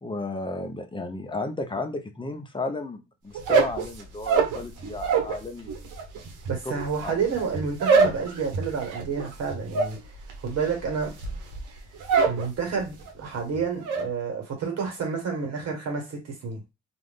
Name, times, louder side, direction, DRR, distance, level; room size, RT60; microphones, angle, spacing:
voice 1, 0.0-5.7 6.6-6.8 7.0-7.2, left 2 dB, 15° left, 0.6 m, -33 dB
sound 1, 3.3-5.4 5.7-12.5 12.8-13.3 13.5-14.1, right 5 dB, 80° right, 0.9 m, -25 dB
voice 2, 6.5-10.0 10.4-11.1 12.2-16.6, right 5 dB, 55° right, 1.4 m, -29 dB
2.5 x 2.5 x 3.5 m
cardioid pair, 90°, 30 cm